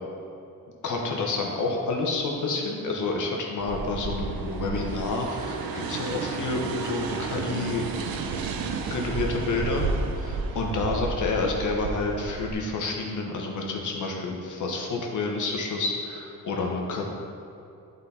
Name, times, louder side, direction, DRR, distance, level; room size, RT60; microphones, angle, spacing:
voice 1, 0.8-7.9 8.9-9.9 10.1-17.1, left 3 dB, 60° left, 0 dB, 1.2 m, -29 dB
sound 1, 3.6-12.5, right 4 dB, 85° right, 0.7 m, -32 dB
11.5 x 4.1 x 4.3 m, 2.7 s
wide cardioid pair, 160°, 34 cm